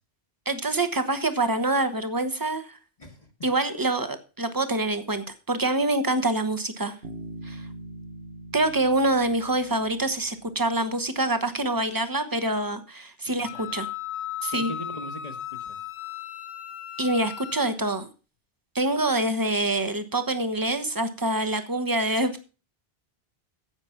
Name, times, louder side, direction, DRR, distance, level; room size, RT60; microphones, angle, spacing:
voice 1, 0.5-2.8 3.4-6.9 7.4-7.6 8.5-13.9 14.4-14.7 17.0-18.1 18.7-22.4, right 2 dB, 20° right, 9 dB, 1.1 m, -26 dB
voice 2, 3.0-3.3 13.2-13.8 14.5-15.8, left 1 dB, 35° left, 2 dB, 1.4 m, -41 dB
Bass guitar, 7.0-10.7, right 1 dB, 70° right, 1.7 m, -42 dB
Wind instrument woodwind instrument, 13.4-17.7, left 10 dB, 75° left, 1.0 m, -36 dB
10.0 x 7.7 x 5.8 m, 0.34 s
omnidirectional pair, 1.1 m